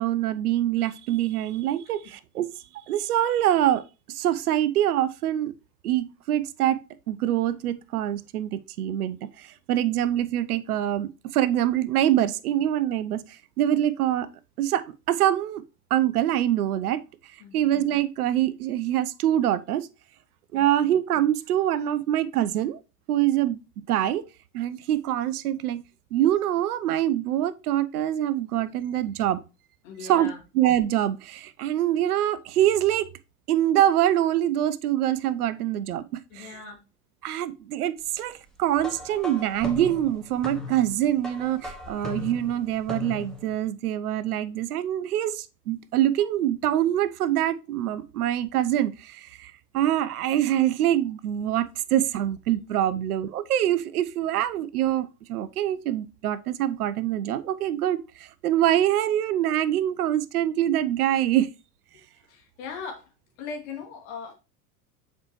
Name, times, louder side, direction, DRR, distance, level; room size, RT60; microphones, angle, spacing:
voice 1, 0.0-2.5 2.9-5.5 5.8-14.3 14.6-15.6 15.9-17.0 17.5-19.9 20.5-22.8 23.1-23.6 23.9-24.3 24.5-25.8 26.1-29.4 30.1-30.3 30.6-33.1 33.5-36.5 37.2-61.5, right 12 dB, 70° right, 0.6 m, -25 dB
voice 2, 20.5-20.9 29.8-30.4 36.3-36.8 52.9-53.0 62.2-63.1 63.4-64.3, left 5 dB, 55° left, 2.3 m, -39 dB
sound 1, 38.8-43.5, left 2 dB, ahead, 1.7 m, -38 dB
7.3 x 4.4 x 3.1 m
figure-of-eight pair, 75°, 47 cm